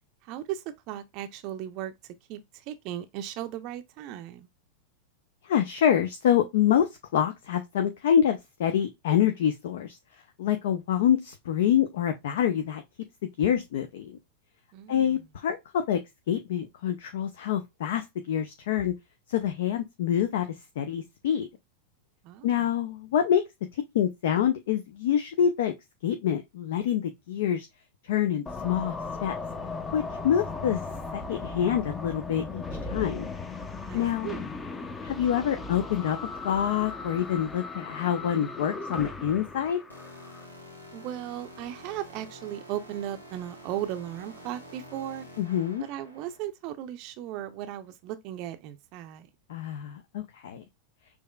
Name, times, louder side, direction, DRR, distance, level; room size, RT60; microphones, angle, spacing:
voice 1, 0.2-1.9 2.3-4.5 14.7-15.3 22.2-22.7 33.9-34.4 40.9-45.3 45.8-49.3, right 12 dB, 40° right, 0.5 m, -36 dB
voice 2, 5.4-10.0 10.4-12.8 13.4-14.2 14.9-16.0 16.3-18.9 19.3-20.5 20.8-21.5 22.4-23.4 23.9-25.7 26.0-27.7 28.1-29.0 29.2-29.3 29.9-30.8 31.1-33.3 33.9-34.3 35.0-36.2 36.4-39.8 45.4-45.8 49.5-50.6, left 9 dB, 55° left, 0.6 m, -26 dB
sound 1, 28.5-40.4, left 3 dB, 15° left, 0.6 m, -37 dB
sound 2, 39.9-46.4, equal, 85° left, 1.4 m, -48 dB
6.3 x 2.8 x 2.3 m
figure-of-eight pair, 90°, 0 cm